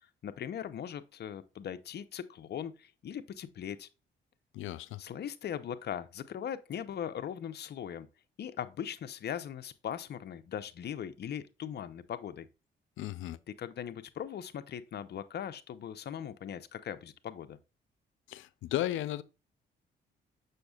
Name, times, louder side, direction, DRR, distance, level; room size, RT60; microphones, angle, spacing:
voice 1, 0.2-3.9 5.0-8.1 8.4-12.5 13.6-17.6, left 9 dB, 55° left, 0.8 m, -39 dB
voice 2, 4.5-5.0 13.0-13.4 18.3-19.2, left 14 dB, 80° left, 0.5 m, -35 dB
6.6 x 6.3 x 2.3 m
cardioid pair, 90°, 20 cm